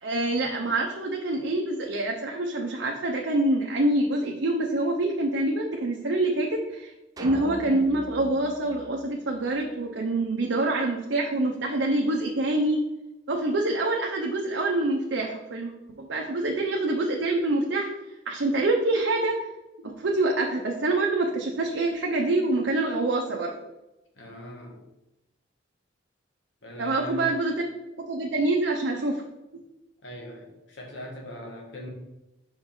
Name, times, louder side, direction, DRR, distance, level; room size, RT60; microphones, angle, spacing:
voice 1, 0.0-6.9 7.2-12.8 13.3-15.7 16.0-17.9 18.3-19.4 19.8-23.5 26.8-27.7 28.1-29.2, right 2 dB, 85° right, 0 dB, 0.7 m, -26 dB
sound 1, 7.2-9.7, right 1 dB, 20° right, 0.5 m, -41 dB
voice 2, 24.1-24.8 26.6-27.4 30.0-31.9, left 1 dB, 80° left, 0 dB, 1.5 m, -41 dB
5.3 x 4.7 x 3.8 m, 0.95 s
head